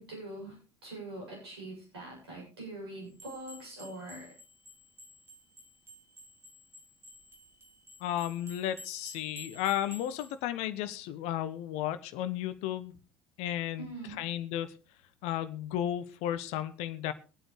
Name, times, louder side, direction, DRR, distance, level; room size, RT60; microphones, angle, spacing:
voice 1, 0.0-4.3 13.8-14.2, right 2 dB, 75° right, -2 dB, 7.8 m, -43 dB
sound 1, 3.1-10.4, left 1 dB, 20° right, 3.3 m, -52 dB
voice 2, 8.0-12.9 13.4-13.9 14.2-14.7 15.2-17.1, left 12 dB, 55° left, 12 dB, 1.1 m, -33 dB
23.0 x 9.0 x 3.3 m, 0.34 s
figure-of-eight pair, 60°, 13 cm